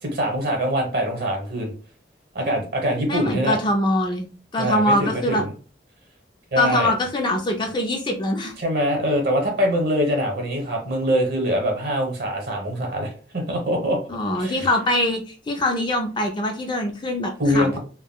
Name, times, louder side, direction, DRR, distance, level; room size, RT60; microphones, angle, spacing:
voice 1, 0.0-1.7 2.3-3.6 4.6-5.5 6.5-6.9 8.6-14.0 14.3-14.7 17.4-17.8, equal, 55° right, 1 dB, 0.9 m, -23 dB
voice 2, 3.1-4.3 4.5-5.4 6.6-8.5 14.1-17.8, left 1 dB, 25° left, 2 dB, 0.4 m, -23 dB
3.5 x 2.1 x 2.3 m, 0.37 s
head